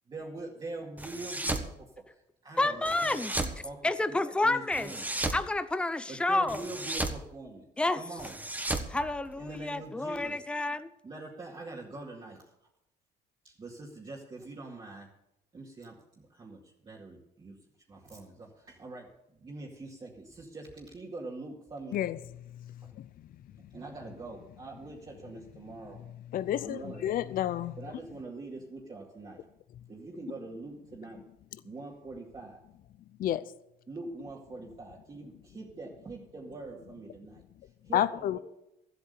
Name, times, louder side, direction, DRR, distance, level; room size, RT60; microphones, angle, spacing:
voice 1, 0.1-1.9 2.4-5.1 6.1-7.6 8.0-8.3 9.4-10.4 11.0-12.5 13.4-15.1 15.5-17.6 17.9-19.1 19.4-22.0 22.8-22.9 23.7-26.0 26.6-27.1 27.8-29.4 29.9-31.2 31.6-32.6 33.9-37.4 37.8-38.4, right 2 dB, 30° right, 2.3 m, -44 dB
sound 1, 1.0-1.7 2.9-3.6 4.7-5.4 6.5-7.2 8.2-9.7, right 2 dB, 10° right, 1.4 m, -34 dB
voice 2, 2.6-3.3 3.8-4.9 5.3-6.6 7.8-8.0 8.9-10.9, left 2 dB, 5° left, 0.6 m, -29 dB
voice 3, 26.3-27.7 33.2-33.4 37.9-38.4, left 12 dB, 55° left, 0.6 m, -29 dB
13.0 x 8.3 x 6.9 m
cardioid pair, 110°, 17 cm